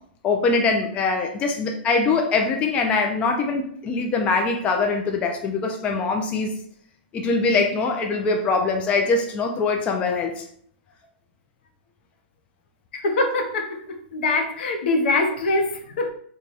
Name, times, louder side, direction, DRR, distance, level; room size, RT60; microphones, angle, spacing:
voice 1, 0.2-6.5 7.1-10.4, left 4 dB, 20° left, 3 dB, 0.4 m, -23 dB
voice 2, 12.9-16.1, left 2 dB, 70° left, 4 dB, 0.8 m, -23 dB
3.2 x 2.2 x 4.0 m, 0.63 s
hypercardioid pair, 145°, 6 cm